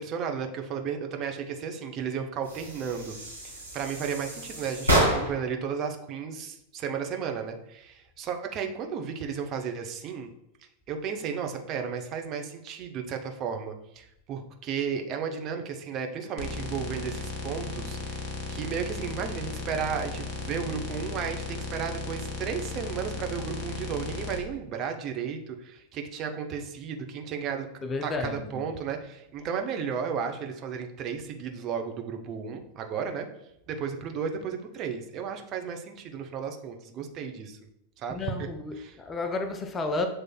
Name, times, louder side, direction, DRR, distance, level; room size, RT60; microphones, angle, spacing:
voice 1, 0.0-3.1 3.4-10.3 10.9-27.7 28.0-33.3 33.7-37.6 38.0-38.5 38.8-39.0, right 6 dB, 35° right, 4 dB, 0.5 m, -34 dB
sound 1, 2.4-5.5, right 1 dB, 85° right, 1.5 m, -28 dB
sound 2, 16.4-24.4, left 2 dB, 35° left, 0.8 m, -36 dB
voice 2, 27.8-28.7 38.1-40.1, left 3 dB, 20° left, 6 dB, 0.4 m, -32 dB
7.3 x 3.2 x 2.2 m, 0.80 s
figure-of-eight pair, 90°, 0 cm